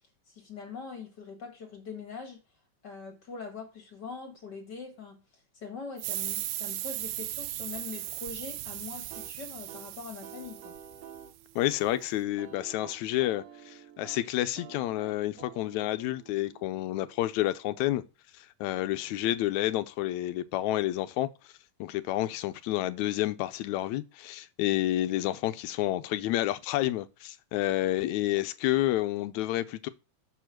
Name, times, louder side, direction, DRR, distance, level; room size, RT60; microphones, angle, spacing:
voice 1, 0.3-2.4 2.8-5.2 5.5-10.8, left 5 dB, 40° left, 2.1 m, -42 dB
sound 1, 6.0-11.3, right 15 dB, 80° right, 1.9 m, -37 dB
sound 2, 9.1-17.7, right 8 dB, 65° right, 2.2 m, -50 dB
voice 2, 11.6-18.0 18.4-21.3 21.8-29.9, left 15 dB, 80° left, 1.9 m, -29 dB
7.0 x 4.7 x 5.9 m
omnidirectional pair, 3.4 m